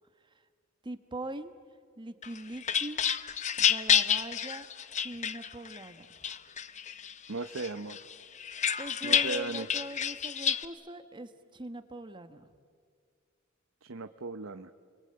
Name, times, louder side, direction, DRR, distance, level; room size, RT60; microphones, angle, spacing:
voice 1, 0.8-1.5 2.0-3.0 3.6-4.6 5.0-6.1 8.8-12.5, right 1 dB, 20° right, 9 dB, 1.2 m, -42 dB
sound 1, 2.2-5.8 6.2-7.1 7.5-10.6, left 8 dB, 35° left, 0.8 m, -29 dB
voice 2, 7.3-8.0 9.0-9.7 13.8-14.7, right 3 dB, 70° right, 9 dB, 0.8 m, -37 dB
29.5 x 22.5 x 8.8 m, 2.1 s
head